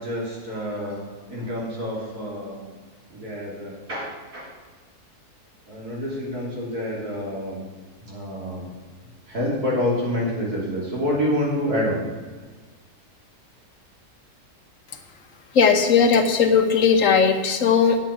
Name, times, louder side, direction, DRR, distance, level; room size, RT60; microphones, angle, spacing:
voice 1, 0.0-2.6 3.1-4.5 5.7-7.6 8.0-8.7 9.3-12.0, equal, 70° right, -5 dB, 3.6 m, -27 dB
voice 2, 15.5-18.0, left 6 dB, 60° left, 6 dB, 1.2 m, -17 dB
10.5 x 8.1 x 5.9 m, 1.4 s
omnidirectional pair, 1.7 m